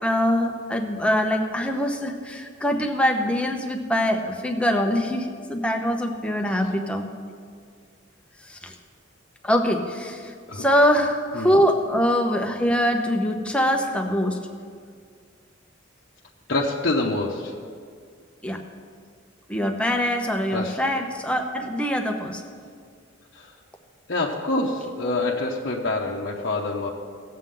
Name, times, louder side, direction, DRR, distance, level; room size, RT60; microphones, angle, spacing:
voice 1, 0.0-7.1 8.5-8.7 9.4-14.4 18.4-18.6 19.5-22.4, equal, 5° left, 3 dB, 0.8 m, -23 dB
voice 2, 16.5-17.5 20.5-20.8 23.3-23.5 24.1-26.9, left 2 dB, 55° left, -4 dB, 0.8 m, -26 dB
18.0 x 7.5 x 3.8 m, 2.1 s
head